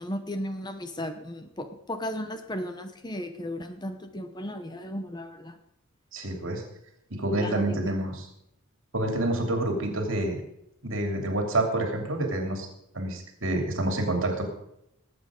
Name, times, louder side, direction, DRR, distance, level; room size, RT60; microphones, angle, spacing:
voice 1, 0.0-5.6 7.3-7.9, equal, 20° left, 8 dB, 0.9 m, -35 dB
voice 2, 6.1-6.6 7.1-8.3 8.9-10.4 10.8-12.7 12.9-14.4, right 1 dB, 60° right, 3 dB, 2.9 m, -28 dB
19.5 x 8.1 x 5.1 m, 0.81 s
head